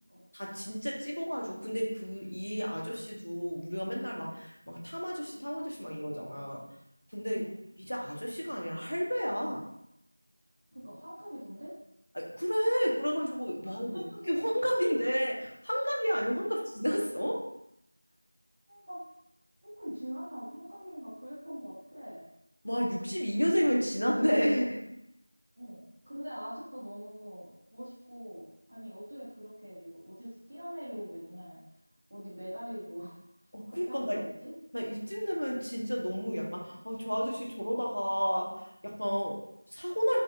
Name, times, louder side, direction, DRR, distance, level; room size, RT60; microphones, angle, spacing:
voice 1, 0.3-6.6 7.1-7.4 7.8-9.7 12.1-17.5 22.6-24.8 33.5-34.2 34.7-40.2, equal, 75° left, -2 dB, 0.6 m, -31 dB
voice 2, 7.3-7.6 10.7-11.7 13.6-14.2 16.5-16.6 18.7-19.0 19.6-22.2 25.6-31.6 32.1-33.2 33.7-34.5, equal, 20° right, -10 dB, 0.5 m, -43 dB
2.5 x 2.0 x 2.4 m, 0.81 s
figure-of-eight pair, 180°, 0 cm